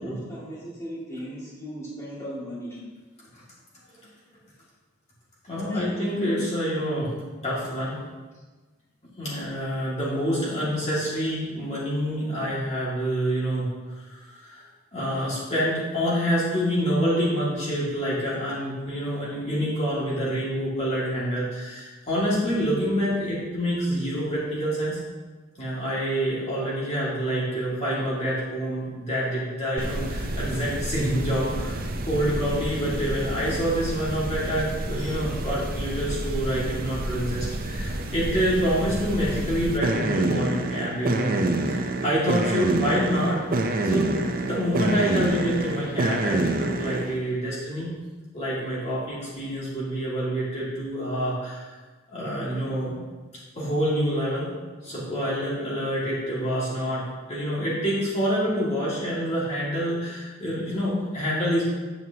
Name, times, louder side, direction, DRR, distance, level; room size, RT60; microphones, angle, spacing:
voice 1, 0.0-2.8 5.7-5.8 9.3-9.4, equal, 15° left, -8 dB, 2.2 m, -37 dB
voice 2, 5.4-7.1 7.4-8.0 9.2-13.7 13.9-25.0 25.6-43.4 43.8-47.9 48.3-51.8 52.1-53.0 53.6-54.5 54.8-61.6, equal, 35° left, -8 dB, 2.1 m, -27 dB
sound 1, 29.8-47.2, right 2 dB, 45° right, 0.7 m, -28 dB
9.1 x 7.9 x 2.9 m, 1.3 s
head